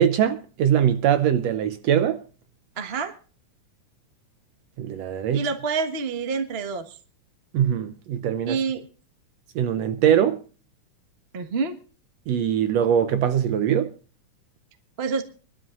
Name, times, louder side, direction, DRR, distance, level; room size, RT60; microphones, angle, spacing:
voice 1, 0.0-2.2 4.8-5.5 7.5-8.6 9.5-10.4 12.3-13.9, right 9 dB, 75° right, 1.6 m, -22 dB
voice 2, 2.8-3.1 5.3-6.8 8.4-8.8 11.3-11.8 15.0-15.2, right 5 dB, 55° right, 0.6 m, -27 dB
25.0 x 12.5 x 2.5 m
omnidirectional pair, 3.6 m